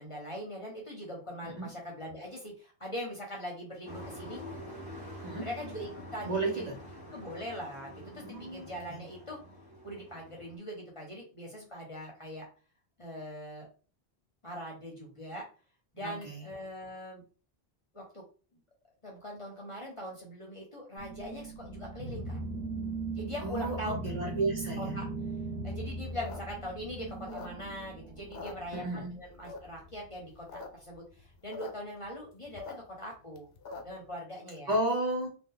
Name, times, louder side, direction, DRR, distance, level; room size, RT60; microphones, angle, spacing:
voice 1, 0.0-4.4 5.4-6.7 7.1-9.4 9.8-12.5 13.0-13.7 14.4-15.5 15.9-17.2 17.9-18.2 18.5-18.6 19.0-22.4 23.1-24.0 24.8-25.1 25.6-33.5 33.8-34.8, equal, 35° left, -2 dB, 0.8 m, -41 dB
Truck, 3.8-10.6, equal, 5° right, 1.3 m, -46 dB
voice 2, 6.3-6.7 8.2-9.0 16.0-16.4 23.4-24.9 28.7-29.2 34.7-35.3, right 2 dB, 45° right, -2 dB, 1.2 m, -33 dB
sound 1, 21.0-28.7, right 3 dB, 85° right, 1.1 m, -39 dB
sound 2, 26.0-27.9 28.2-29.1 29.4-29.9 30.3-30.7 30.9-31.0 31.2-31.7 32.1-34.1, left 4 dB, 85° left, 0.9 m, -44 dB
2.7 x 2.4 x 3.8 m, 0.37 s
omnidirectional pair, 1.0 m